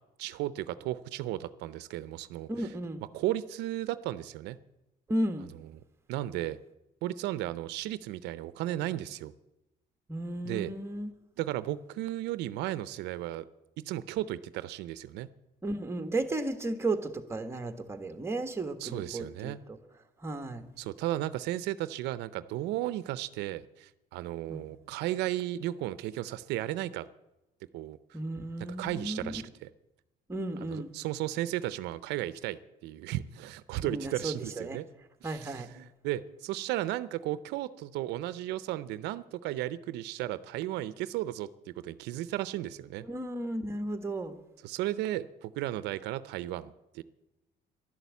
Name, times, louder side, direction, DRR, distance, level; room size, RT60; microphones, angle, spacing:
voice 1, 0.2-2.5 3.1-4.6 6.1-6.6 7.0-9.3 10.4-10.7 11.4-13.4 13.8-15.3 18.8-19.6 20.8-27.1 27.7-28.2 28.8-29.7 30.6-34.8 35.2-41.5 41.8-43.0 44.6-47.0, right 14 dB, 85° right, 16 dB, 0.6 m, -34 dB
voice 2, 2.5-3.0 5.1-5.5 10.1-11.1 15.6-19.8 20.2-20.6 24.5-24.7 28.1-29.4 30.3-30.9 33.8-34.8 35.2-35.7 43.0-44.4, right 2 dB, 15° right, 7 dB, 1.4 m, -34 dB
11.5 x 11.0 x 8.3 m, 0.97 s
cardioid pair, 110°, 17 cm